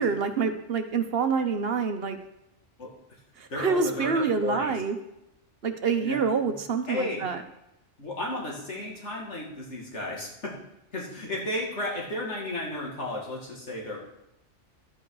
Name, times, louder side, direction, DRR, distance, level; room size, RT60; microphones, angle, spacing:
voice 1, 0.0-2.2 3.4-5.0 5.6-7.4, right 5 dB, 55° right, 7 dB, 1.1 m, -26 dB
voice 2, 3.5-4.8 6.0-6.2 6.9-7.2 8.0-10.5 10.9-14.0, left 1 dB, 70° left, -2 dB, 2.6 m, -33 dB
11.5 x 8.3 x 4.8 m, 0.88 s
omnidirectional pair, 1.2 m